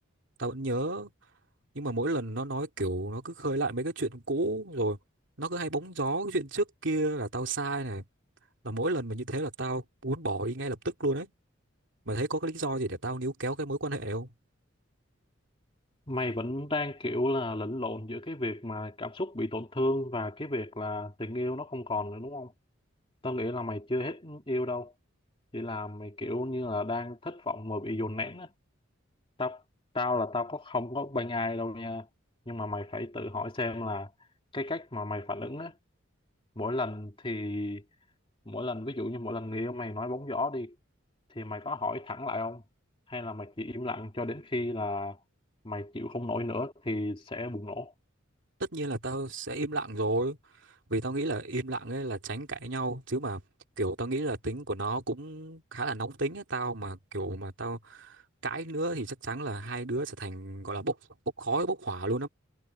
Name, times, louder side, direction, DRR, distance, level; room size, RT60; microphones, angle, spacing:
voice 1, 0.4-1.1 1.7-5.0 5.4-8.0 8.6-11.3 12.0-14.3 48.6-53.4 53.8-61.0 61.4-62.3, right 2 dB, 60° right, 3.2 m, -32 dB
voice 2, 16.1-22.5 23.2-24.9 25.5-28.5 29.4-29.6 29.9-32.1 32.5-34.1 34.5-35.8 36.6-37.8 38.5-40.7 41.3-42.6 43.1-45.2 45.6-47.9, left 2 dB, 25° left, 2.4 m, -33 dB
head